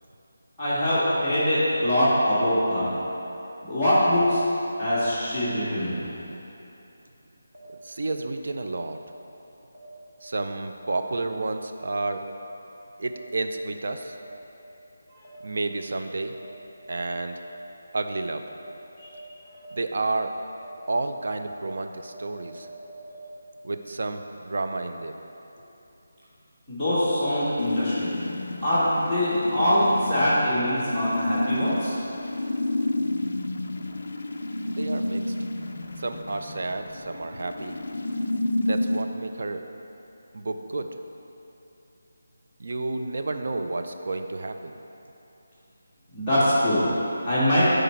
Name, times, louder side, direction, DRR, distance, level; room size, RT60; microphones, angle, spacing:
voice 1, 0.6-2.9 3.6-4.4 4.8-6.0 19.0-19.1 26.7-28.2 28.6-31.9 46.1-46.9 47.2-47.6, equal, ahead, -21 dB, 1.7 m, -23 dB
sound 1, 7.5-7.6 8.6-8.7 9.7-9.8 10.8-10.9 11.9-12.0 13.0-13.1 14.1-14.2 15.2-15.3 16.3-16.4 17.4-17.5 18.0-18.1 18.5-18.6 19.0-19.1 19.5-19.6 20.0-20.1 20.5-20.6 21.0-21.1 21.5-21.6 22.0-23.1, right 1 dB, 25° right, 1.6 m, -48 dB
voice 2, 7.8-9.0 10.2-12.3 13.0-14.2 15.4-16.4 16.9-17.4 17.9-18.5 19.7-20.3 20.9-22.7 23.6-25.2 34.6-35.3 36.0-37.8 38.6-39.6 40.3-41.0 42.6-44.7, right 2 dB, 45° right, 6 dB, 0.5 m, -31 dB
sound 2, 27.6-39.0, left 1 dB, 45° left, 0.5 m, -30 dB
10.0 x 5.0 x 4.4 m, 3.0 s
figure-of-eight pair, 180°, 0 cm